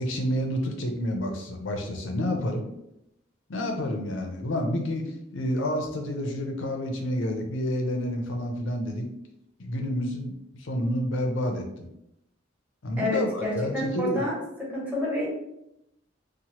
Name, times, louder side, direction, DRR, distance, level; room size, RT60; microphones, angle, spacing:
voice 1, 0.0-2.6 3.5-5.0 5.3-9.1 9.6-10.3 10.6-11.9 12.8-14.3, equal, 80° left, 4 dB, 0.5 m, -29 dB
voice 2, 13.0-15.3, left 1 dB, 10° right, -5 dB, 0.8 m, -29 dB
3.0 x 2.1 x 2.8 m, 0.81 s
head